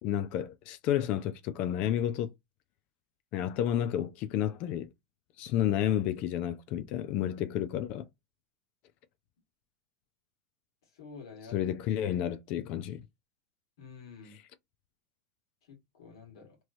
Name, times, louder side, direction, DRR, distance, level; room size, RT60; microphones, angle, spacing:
voice 1, 0.0-2.3 3.3-4.9 5.4-8.1 11.5-13.0, left 11 dB, 50° left, 0.4 m, -31 dB
voice 2, 10.8-11.6 13.8-14.4 15.6-16.6, left 5 dB, 70° left, 1.8 m, -49 dB
3.0 x 3.0 x 2.6 m
hypercardioid pair, 100°, 3 cm